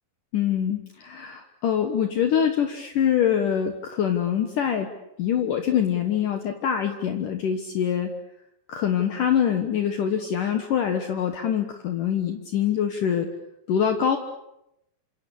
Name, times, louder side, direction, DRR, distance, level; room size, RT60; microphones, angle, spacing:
voice 1, 0.3-4.9 5.2-8.1 8.7-13.3 13.7-14.2, left 8 dB, 60° left, 6 dB, 2.7 m, -24 dB
28.0 x 26.5 x 7.3 m, 0.83 s
omnidirectional pair, 4.7 m